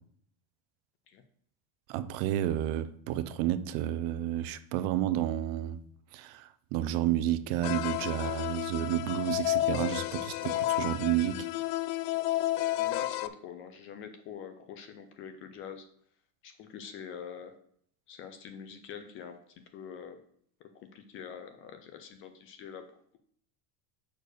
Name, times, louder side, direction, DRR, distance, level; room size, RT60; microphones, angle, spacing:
voice 1, 1.9-5.8 6.1-11.5, right 12 dB, 60° right, 0.6 m, -31 dB
sound 1, 7.6-13.3, left 15 dB, 80° left, 0.6 m, -31 dB
voice 2, 12.8-15.9 16.4-17.5 18.1-20.2 20.6-22.9, left 7 dB, 30° left, 0.4 m, -45 dB
6.8 x 4.4 x 6.3 m
cardioid pair, 170°, 47 cm